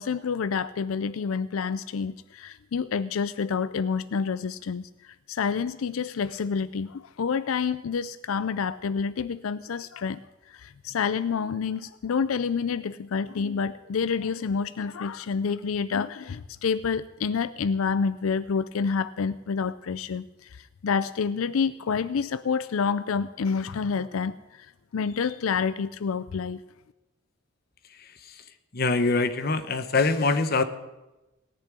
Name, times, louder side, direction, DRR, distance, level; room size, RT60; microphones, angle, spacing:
voice 1, 0.0-10.2 10.5-26.6, left 5 dB, 90° left, 15 dB, 0.4 m, -28 dB
voice 2, 28.7-30.6, left 3 dB, 50° left, 10 dB, 1.0 m, -23 dB
18.0 x 7.1 x 9.6 m, 1.0 s
head